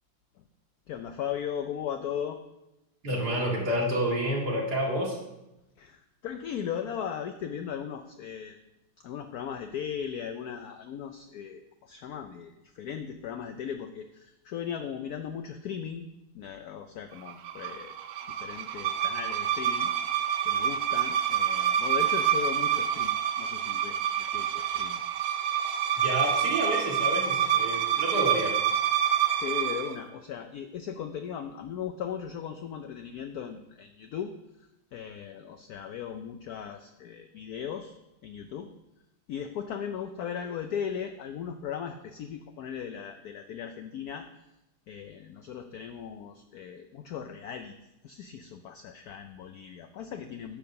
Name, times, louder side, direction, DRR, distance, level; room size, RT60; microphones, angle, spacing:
voice 1, 0.9-2.4 5.8-8.6 9.0-16.1 16.3-17.9 18.3-25.0 27.4-27.5 29.3-34.3 34.6-38.0 38.2-38.7 39.3-44.3 44.9-47.7 48.0-50.6, left 8 dB, 85° left, 7 dB, 0.8 m, -37 dB
voice 2, 3.0-5.2 26.0-28.5, equal, 50° right, -3 dB, 2.6 m, -29 dB
sound 1, 17.3-30.0, right 9 dB, 75° right, 0.9 m, -27 dB
9.8 x 4.6 x 6.7 m, 0.93 s
omnidirectional pair, 2.2 m